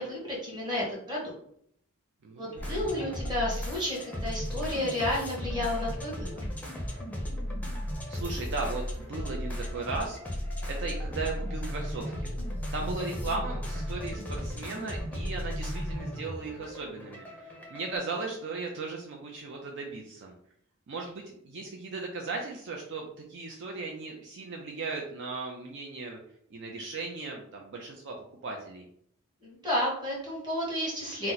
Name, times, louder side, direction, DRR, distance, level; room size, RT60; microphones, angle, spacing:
voice 1, 0.0-1.3 2.4-6.3 29.4-31.3, left 1 dB, 20° right, -4 dB, 1.2 m, -31 dB
voice 2, 2.2-3.2 8.1-10.2 10.7-12.3 12.7-20.3 20.9-26.2 26.5-28.2 28.4-28.9, right 3 dB, 55° right, 1 dB, 0.4 m, -37 dB
sound 1, 2.6-18.0, equal, 5° left, 0.6 m, -35 dB
2.8 x 2.1 x 3.8 m, 0.67 s
head